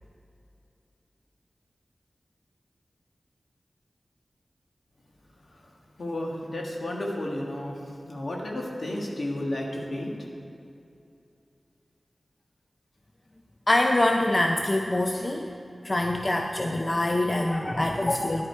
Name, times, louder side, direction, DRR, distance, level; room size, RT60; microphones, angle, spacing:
voice 1, 6.0-10.2, left 1 dB, 65° left, -1 dB, 1.5 m, -32 dB
voice 2, 13.7-15.5 15.8-18.5, left 1 dB, 35° left, 3 dB, 0.5 m, -24 dB
11.0 x 8.2 x 4.5 m, 2.6 s
wide cardioid pair, 70°, 0 cm